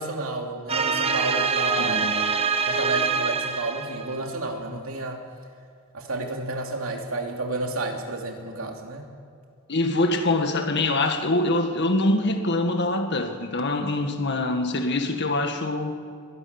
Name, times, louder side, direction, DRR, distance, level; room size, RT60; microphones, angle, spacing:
voice 1, 0.0-2.1 2.6-5.2 5.9-9.1, right 2 dB, 80° right, 2 dB, 2.9 m, -31 dB
sound 1, 0.7-4.2, right 5 dB, 30° right, 1.0 m, -25 dB
voice 2, 1.8-2.3 9.7-16.0, left 2 dB, 55° left, 6 dB, 1.9 m, -24 dB
22.5 x 13.0 x 9.7 m, 2.4 s
head